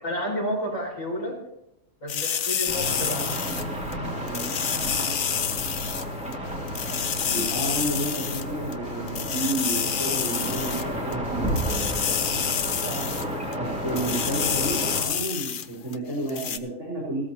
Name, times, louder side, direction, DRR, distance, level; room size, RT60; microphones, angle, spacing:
voice 1, 0.0-1.4 2.0-3.4 12.8-13.1, equal, 75° left, -3 dB, 5.4 m, -31 dB
sound 1, 2.1-3.9 4.3-6.0 6.3-6.4 6.7-8.4 8.7-8.8 9.1-11.1 11.5-13.2 13.5-13.6 13.9-15.7 15.9-16.0 16.3-16.6, left 8 dB, 55° left, 0.6 m, -28 dB
sound 2, 2.7-15.0, equal, 5° right, 2.6 m, -31 dB
voice 2, 4.1-4.5 7.2-11.5 13.5-17.2, right 1 dB, 60° right, -7 dB, 4.4 m, -31 dB
16.5 x 13.5 x 3.0 m, 0.78 s
omnidirectional pair, 1.4 m